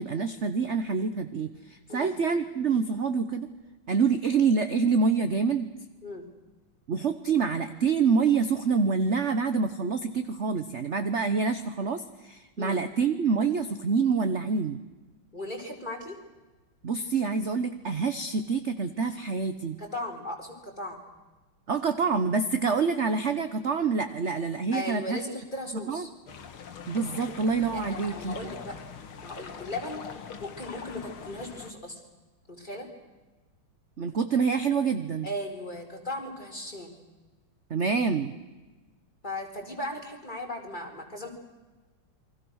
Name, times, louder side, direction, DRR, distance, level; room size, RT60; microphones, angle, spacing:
voice 1, 0.0-3.5 3.9-5.7 6.9-14.8 16.8-19.8 21.7-25.2 25.9-26.1 26.9-28.4 34.0-35.3 37.7-38.3, right 5 dB, 40° right, 9 dB, 1.1 m, -26 dB
voice 2, 15.3-16.2 19.8-21.0 24.7-26.1 27.7-28.8 29.2-30.1 30.4-32.0 32.5-32.9 35.2-36.9 39.2-41.3, left 1 dB, 20° left, 2 dB, 4.4 m, -37 dB
sound 1, 26.3-31.7, left 6 dB, 80° left, 2.5 m, -42 dB
29.0 x 23.5 x 6.4 m, 1.2 s
omnidirectional pair, 2.3 m